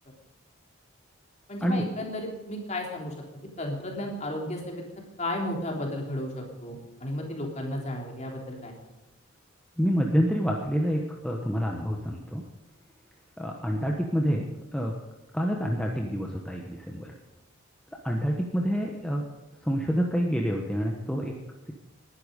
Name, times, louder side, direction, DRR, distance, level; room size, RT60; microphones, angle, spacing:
voice 1, 1.5-3.1 3.6-4.8 5.2-8.7, left 1 dB, 30° left, 0 dB, 3.3 m, -33 dB
voice 2, 9.8-12.4 13.4-14.4 14.7-14.9 15.3-17.1 18.0-19.2 19.6-21.3, equal, 5° left, -1 dB, 1.2 m, -27 dB
19.5 x 11.5 x 5.3 m, 1.0 s
head